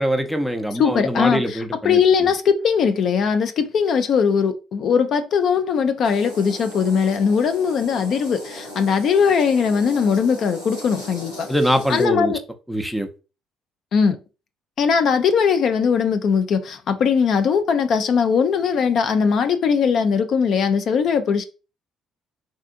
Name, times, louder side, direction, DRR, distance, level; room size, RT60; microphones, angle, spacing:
voice 1, 0.0-2.0 11.5-12.3 12.7-13.1, equal, ahead, 0.6 m, -22 dB
voice 2, 0.7-11.5 11.9-12.4 13.9-14.2 14.8-21.4, left 6 dB, 60° left, 0.4 m, -20 dB
sound 1, 6.0-12.0, equal, 90° left, 1.6 m, -38 dB
3.7 x 2.4 x 2.5 m
supercardioid pair, 75°, 0 cm